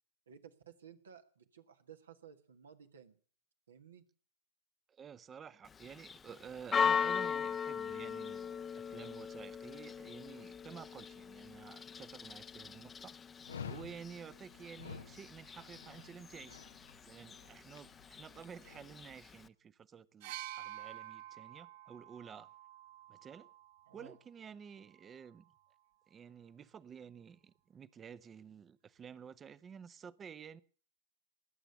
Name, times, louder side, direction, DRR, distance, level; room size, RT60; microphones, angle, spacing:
voice 1, 0.3-3.2 3.7-4.0 23.9-24.2, right 8 dB, 75° right, 1.7 m, -56 dB
voice 2, 4.9-13.2 13.6-16.7 17.0-22.5 23.1-23.5 23.9-25.5 26.1-30.6, right 7 dB, 25° right, 0.8 m, -51 dB
Church bell, 5.7-19.5, left 7 dB, 20° left, 0.7 m, -40 dB
Dog, 13.5-18.9, left 6 dB, 80° left, 0.9 m, -50 dB
sound 1, 20.2-24.0 25.1-25.2, right 13 dB, 55° right, 0.7 m, -49 dB
19.5 x 8.1 x 8.0 m
figure-of-eight pair, 90°, 0 cm